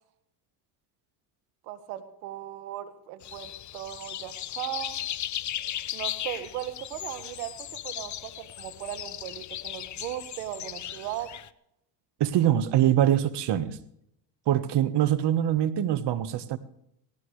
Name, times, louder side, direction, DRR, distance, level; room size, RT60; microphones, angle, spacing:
voice 1, 1.6-5.0 5.9-7.5 7.8-11.3, right 13 dB, 90° right, 11 dB, 1.8 m, -37 dB
sound 1, 3.2-11.5, left 11 dB, 35° left, 0.8 m, -37 dB
voice 2, 12.2-13.8 14.5-16.6, right 11 dB, 55° right, 13 dB, 1.5 m, -24 dB
19.0 x 17.5 x 3.3 m, 0.75 s
supercardioid pair, 85°, 48 cm